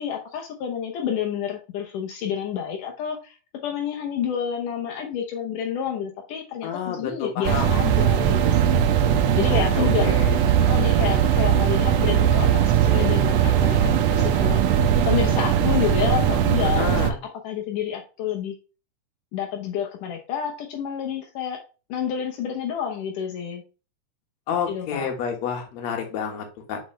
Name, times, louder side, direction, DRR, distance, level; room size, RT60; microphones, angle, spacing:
voice 1, 0.0-3.4 3.6-8.9 9.4-10.1 10.6-14.6 15.0-16.9 17.2-18.6 19.3-21.6 21.9-23.6 24.7-25.1, left 8 dB, 80° left, 2 dB, 2.5 m, -29 dB
voice 2, 6.6-7.7 9.5-10.3 16.8-17.2 24.5-26.8, left 7 dB, 60° left, 3 dB, 2.6 m, -29 dB
sound 1, 7.4-17.1, right 9 dB, 80° right, 1.5 m, -20 dB
6.3 x 5.1 x 3.2 m, 0.34 s
omnidirectional pair, 3.7 m